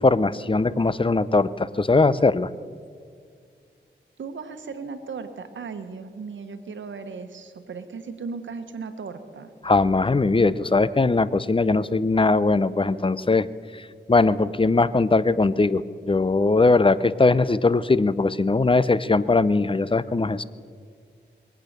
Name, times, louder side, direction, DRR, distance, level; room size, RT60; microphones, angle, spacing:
voice 1, 0.0-2.5 9.6-13.5 13.7-20.4, left 3 dB, 30° left, 17 dB, 0.7 m, -20 dB
voice 2, 4.2-9.5, right 5 dB, 85° right, 9 dB, 1.2 m, -36 dB
22.0 x 8.6 x 6.6 m, 2.2 s
cardioid pair, 45°, 19 cm